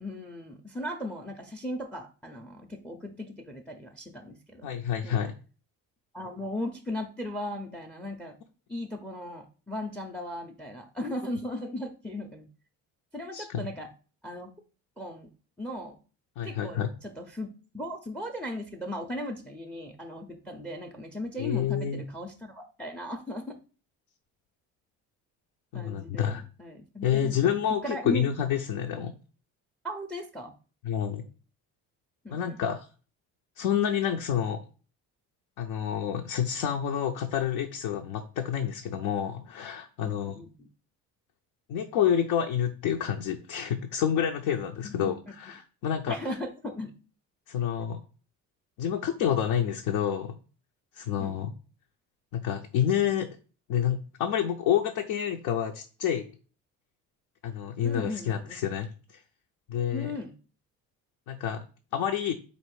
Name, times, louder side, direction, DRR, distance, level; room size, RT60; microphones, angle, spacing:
voice 1, 0.0-4.7 5.0-5.3 6.1-8.4 8.7-12.5 13.1-13.9 14.2-14.5 15.0-15.3 15.6-16.0 16.4-23.5 25.7-28.3 29.8-30.5 32.2-32.6 40.0-40.7 44.8-45.2 46.1-46.9 51.2-51.4 57.8-58.6 59.9-60.3, left 1 dB, 5° left, 6 dB, 0.4 m, -37 dB
voice 2, 4.6-5.3 13.3-13.7 16.4-16.9 21.4-22.0 25.7-26.4 27.0-29.2 30.8-31.2 32.3-32.9 33.6-34.7 35.6-40.4 41.7-46.2 47.5-48.0 48.8-50.4 50.9-51.5 52.3-53.4 53.7-56.3 57.4-59.2 59.7-60.1 61.3-61.6 61.9-62.3, left 9 dB, 80° left, 3 dB, 0.6 m, -28 dB
4.2 x 2.5 x 4.7 m, 0.36 s
cardioid pair, 100°, 35 cm